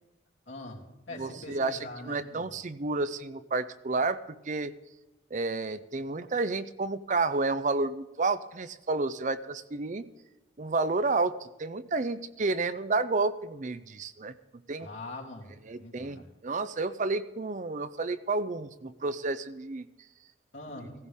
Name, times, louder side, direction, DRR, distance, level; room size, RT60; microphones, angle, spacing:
voice 1, 0.5-2.5 14.8-16.3 20.5-20.9, left 2 dB, 70° left, -3 dB, 3.1 m, -43 dB
voice 2, 1.2-1.8 2.0-4.7 5.3-10.1 10.6-14.3 14.7-14.9 15.7-19.9, right 3 dB, 40° right, 13 dB, 0.5 m, -30 dB
16.5 x 15.0 x 3.6 m, 1.1 s
head